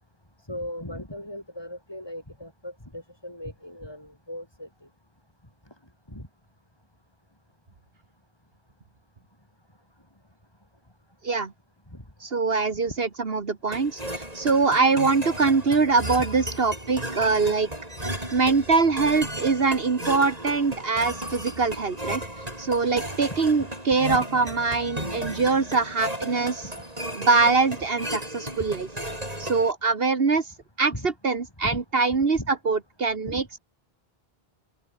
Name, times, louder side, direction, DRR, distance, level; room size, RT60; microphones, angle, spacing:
voice 1, 0.5-4.7 6.1-6.3 11.9-12.0 15.7-15.9 16.2-16.3 23.3-23.4 24.1-24.2 25.1-25.3 28.6-28.7 30.9-31.1 31.6-31.8 32.4-32.5 33.3-33.4, left 1 dB, 25° left, 6.2 m, -38 dB
voice 2, 12.2-17.7 18.3-22.2 22.6-26.7 27.2-28.9 29.4-30.5 30.8-33.6, right 4 dB, 70° right, 1.9 m, -23 dB
sound 1, 13.7-29.7, right 1 dB, 40° right, 8.2 m, -34 dB
open air
omnidirectional pair, 1.0 m